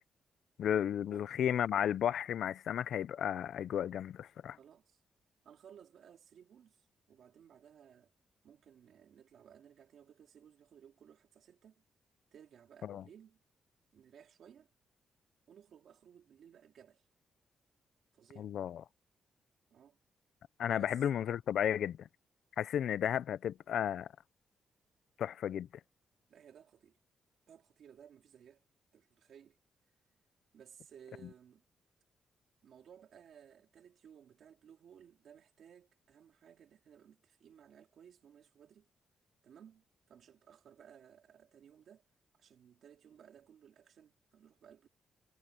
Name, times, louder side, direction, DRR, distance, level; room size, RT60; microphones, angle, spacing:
voice 1, 0.6-4.6 12.9-13.0 18.4-18.8 20.6-22.1 22.6-24.1 25.2-25.7, left 9 dB, 75° left, 0.5 m, -33 dB
voice 2, 4.6-5.0 5.4-8.1 8.4-11.8 12.3-13.4 13.9-14.7 15.5-17.0 18.1-18.5 19.7-20.0 20.8-21.0 26.3-27.0 27.5-28.6 28.9-29.6 30.5-31.6 32.6-38.9 39.4-42.1 42.3-44.9, right 8 dB, 65° right, 3.4 m, -59 dB
wide cardioid pair, 145°, 0 cm